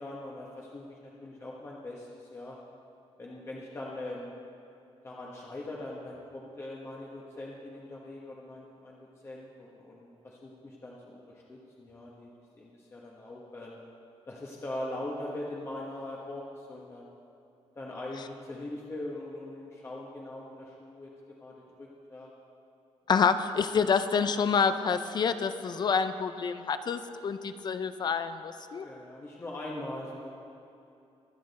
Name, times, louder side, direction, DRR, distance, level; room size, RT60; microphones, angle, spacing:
voice 1, 0.0-2.6 3.2-4.3 5.0-9.0 9.2-12.3 12.6-13.8 14.3-17.1 17.7-22.3 28.8-30.3, left 1 dB, 25° left, -3 dB, 1.2 m, -41 dB
voice 2, 23.1-28.9, left 6 dB, 40° left, 11 dB, 0.5 m, -27 dB
23.5 x 8.7 x 4.1 m, 2.7 s
cardioid pair, 160°, 11 cm